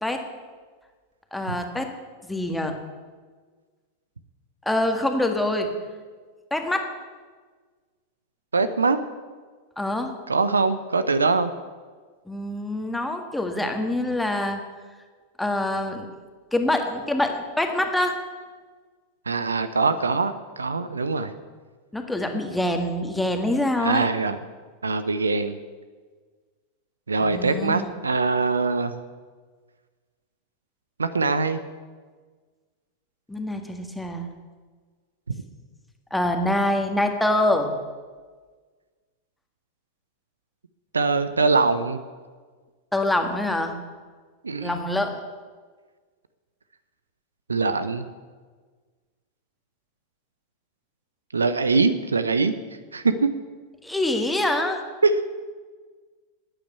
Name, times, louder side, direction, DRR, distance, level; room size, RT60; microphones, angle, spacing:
voice 1, 1.3-1.9 2.2-2.8 4.7-5.9 6.5-6.9 9.8-10.1 12.3-14.6 15.4-16.1 16.5-18.2 21.9-24.1 27.2-27.9 33.3-34.3 36.1-37.8 42.9-43.8 44.6-45.2 53.8-54.8, left 1 dB, 5° left, 4 dB, 1.7 m, -25 dB
voice 2, 8.5-9.0 10.3-11.5 19.3-21.3 23.8-24.4 24.8-25.6 27.1-28.9 31.0-31.6 35.3-35.4 40.9-42.0 44.4-44.8 47.5-48.0 51.3-52.5 52.9-53.3 55.0-55.3, right 4 dB, 75° right, 12 dB, 0.7 m, -23 dB
13.5 x 9.1 x 8.4 m, 1.5 s
figure-of-eight pair, 90°, 0 cm